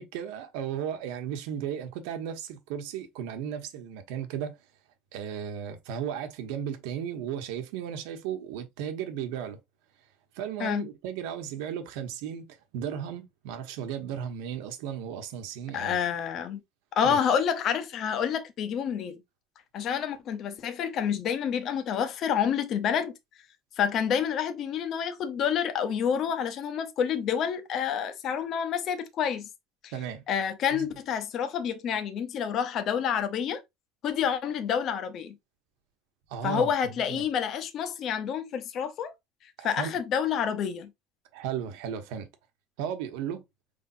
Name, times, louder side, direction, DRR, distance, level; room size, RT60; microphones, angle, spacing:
voice 1, 0.0-4.6 5.1-9.6 10.3-16.0 17.0-17.2 29.9-30.2 30.7-30.9 36.3-37.2 39.6-39.9 41.3-42.3 42.8-43.4, right 8 dB, 85° right, 1.1 m, -35 dB
voice 2, 15.7-16.6 17.0-19.2 19.7-23.2 23.8-29.5 29.8-29.9 30.3-33.6 34.0-35.4 36.4-39.1 39.4-40.9, left 8 dB, 40° left, 0.7 m, -28 dB
5.4 x 3.4 x 2.7 m
cardioid pair, 175°, 0 cm